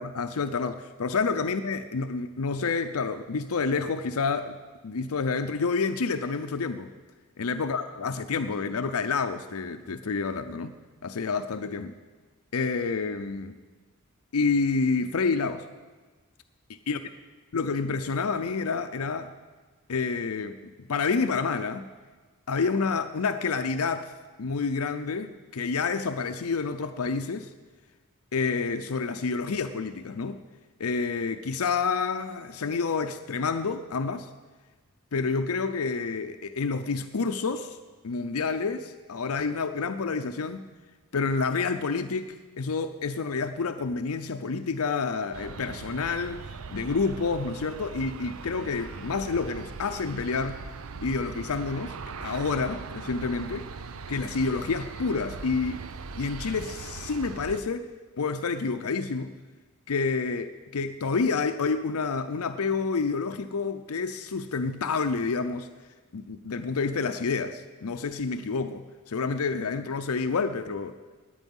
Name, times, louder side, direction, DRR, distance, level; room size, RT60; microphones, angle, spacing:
voice 1, 0.0-4.6 4.8-6.9 7.4-10.7 11.0-11.9 12.5-13.6 14.3-15.7 16.9-17.0 17.5-19.3 19.9-21.9 22.5-24.1 24.4-27.5 28.3-30.4 30.8-34.3 35.1-37.8 38.0-40.7 41.1-50.6 51.0-52.0 52.2-53.7 54.1-55.9 56.1-57.9 58.2-59.3 59.9-65.7 66.1-70.9, left 4 dB, 85° left, 8 dB, 0.6 m, -29 dB
Aircraft, 45.3-57.6, right 5 dB, 70° right, 0.6 m, -40 dB
17.5 x 10.5 x 5.4 m, 1.4 s
head